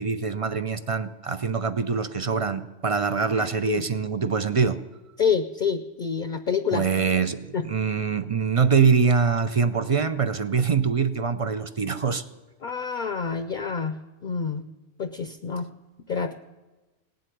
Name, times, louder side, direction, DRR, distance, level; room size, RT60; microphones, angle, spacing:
voice 1, 0.0-4.8 6.7-12.3, right 5 dB, 45° right, 11 dB, 0.4 m, -24 dB
voice 2, 3.3-3.8 5.2-7.0 7.5-7.6 12.6-14.0 14.2-14.6 15.0-15.7 16.1-16.3, left 6 dB, 50° left, 9 dB, 0.7 m, -27 dB
18.0 x 7.9 x 9.2 m, 1.2 s
omnidirectional pair, 1.2 m